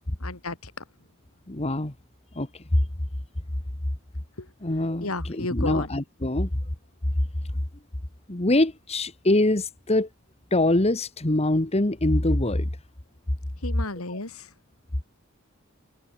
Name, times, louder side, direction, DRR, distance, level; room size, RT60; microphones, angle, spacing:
voice 1, 0.2-0.8 4.4-4.5 5.0-5.9 13.6-14.5, left 2 dB, 85° left, 4.3 m, -33 dB
voice 2, 1.5-1.9 2.3-2.5 4.6-6.5 8.3-10.1 10.5-12.7 14.1-14.2, left 1 dB, 30° left, 1.4 m, -24 dB
head